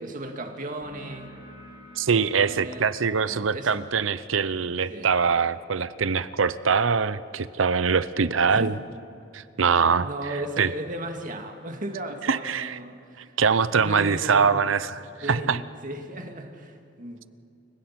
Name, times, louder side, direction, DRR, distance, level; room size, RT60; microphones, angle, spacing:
voice 1, 0.0-1.3 2.4-3.8 4.9-5.1 8.5-8.8 10.0-13.4 13.7-14.7 15.2-17.3, right 1 dB, 45° right, 4 dB, 2.1 m, -36 dB
sound 1, 0.8-8.1, equal, 25° right, 6.3 m, -52 dB
voice 2, 2.0-8.7 9.3-10.7 12.3-12.8 13.4-15.0 15.3-15.6, right 5 dB, 85° right, 15 dB, 0.7 m, -23 dB
29.5 x 16.5 x 5.9 m, 2.7 s
head